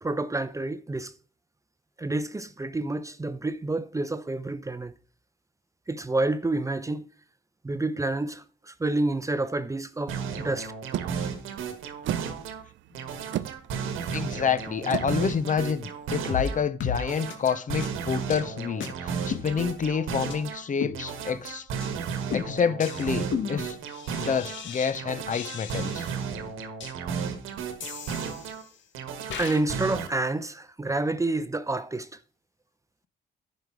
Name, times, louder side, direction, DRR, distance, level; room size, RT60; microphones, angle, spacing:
voice 1, 0.0-1.1 2.0-4.9 5.9-7.0 7.6-10.7 29.4-32.1, right 2 dB, 15° right, 0.6 m, -29 dB
sound 1, 10.1-12.6 12.9-16.6 16.9-20.6 20.9-24.6 24.9-28.6 28.9-30.1, right 6 dB, 90° right, 1.4 m, -34 dB
sound 2, 10.9-16.5, right 12 dB, 70° right, 0.5 m, -37 dB
voice 2, 14.1-21.7 22.3-23.8 24.2-26.0, left 6 dB, 40° left, 0.7 m, -28 dB
sound 3, 16.3-16.5 16.8-17.0 17.3-17.4 17.8-17.9 18.3-18.5 18.8-18.9 19.3-19.9 20.3-20.4 20.8-21.4 21.8-22.0 22.3-24.9 25.3-26.2 26.8-26.9 27.8-28.8 29.3-29.6, left 6 dB, 70° left, 1.7 m, -35 dB
10.5 x 5.1 x 4.7 m
cardioid pair, 90°, 20 cm